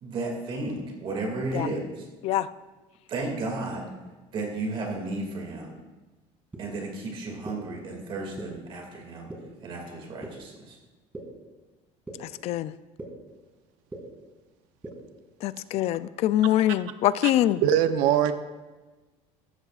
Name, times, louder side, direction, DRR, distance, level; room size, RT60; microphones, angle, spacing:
voice 1, 0.0-2.1 3.1-3.9 4.3-5.8 6.6-9.3 9.6-10.8, right 2 dB, 40° right, 1 dB, 2.3 m, -33 dB
sound 1, 6.5-6.6 7.4-7.5 8.4-8.5 9.3-9.4 10.2-10.3 11.1-11.2 12.1-12.2 13.0-13.1 13.9-14.0 14.8-14.9, right 2 dB, 15° right, 2.4 m, -37 dB
voice 2, 12.2-12.7 15.4-17.6, left 13 dB, 55° left, 15 dB, 0.4 m, -24 dB
voice 3, 17.6-18.3, right 10 dB, 85° right, 9 dB, 0.8 m, -21 dB
14.5 x 13.5 x 2.5 m, 1.2 s
cardioid pair, 150°, 13 cm